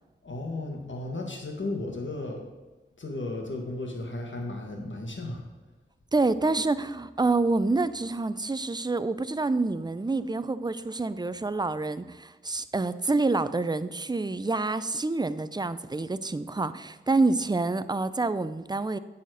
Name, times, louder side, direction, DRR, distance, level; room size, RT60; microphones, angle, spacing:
voice 1, 0.2-2.4 3.0-5.4, left 2 dB, 70° left, 2 dB, 1.7 m, -34 dB
voice 2, 6.1-19.0, right 3 dB, 20° right, 14 dB, 0.5 m, -27 dB
9.0 x 4.3 x 6.3 m, 1.1 s
cardioid pair, 45°, 20 cm